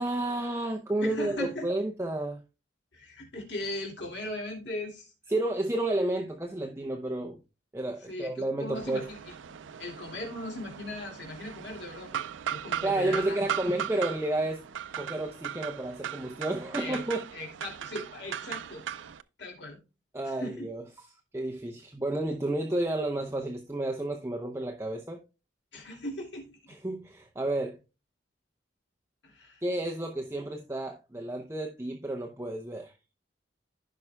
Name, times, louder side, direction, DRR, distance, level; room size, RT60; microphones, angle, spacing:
voice 1, 0.0-2.4 5.3-7.4 7.7-9.1 12.8-14.6 15.0-17.2 20.1-20.8 21.3-25.2 26.7-27.8 29.6-32.9, right 1 dB, 15° right, 0.7 m, -31 dB
voice 2, 1.0-1.7 2.9-5.1 8.1-9.3 9.8-12.2 12.5-13.5 16.7-17.0 17.3-18.8 19.4-19.8 20.2-20.7 25.7-26.8 29.2-29.6, left 1 dB, 65° left, 2.6 m, -38 dB
sound 1, 8.7-19.2, right 9 dB, 75° right, 0.4 m, -38 dB
15.0 x 5.5 x 2.3 m
head